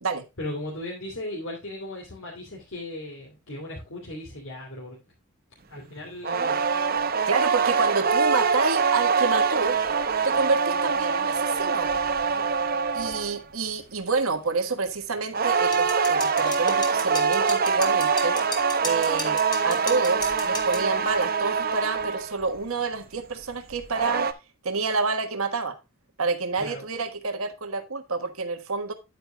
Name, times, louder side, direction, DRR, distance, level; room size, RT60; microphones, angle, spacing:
voice 1, 0.4-5.0 5.7-6.7 26.6-26.9, left 1 dB, 70° left, -3 dB, 2.9 m, -37 dB
sound 1, 6.2-13.4 15.3-22.4 23.7-24.3, right 5 dB, 45° right, 0.8 m, -24 dB
voice 2, 7.3-9.8 10.2-12.0 12.9-18.4 18.8-19.4 19.6-24.3 24.6-25.8 26.2-28.9, right 4 dB, 90° right, 7 dB, 1.4 m, -28 dB
sound 2, 15.7-20.9, left 2 dB, 20° left, 1.7 m, -35 dB
9.9 x 9.0 x 2.2 m, 0.26 s
head